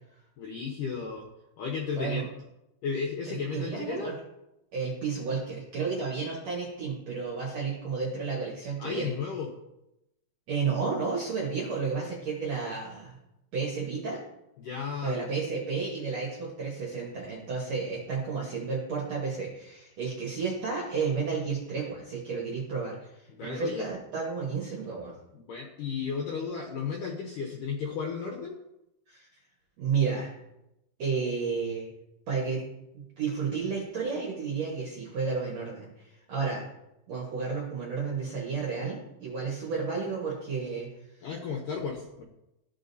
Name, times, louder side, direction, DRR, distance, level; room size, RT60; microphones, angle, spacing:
voice 1, 0.4-1.3 1.6-2.2 2.8-4.1 8.8-9.5 14.6-15.3 23.3-23.9 25.3-28.6 41.2-42.2, left 5 dB, 80° left, 0 dB, 1.9 m, -34 dB
voice 2, 1.9-2.3 3.3-4.1 4.7-9.1 10.5-13.2 13.5-14.2 15.0-25.1 29.1-29.3 29.8-30.3 31.0-31.9 32.3-32.6 32.9-36.6 37.1-40.9, right 5 dB, 65° right, -3 dB, 1.7 m, -32 dB
14.5 x 4.9 x 2.7 m, 0.89 s
omnidirectional pair, 4.8 m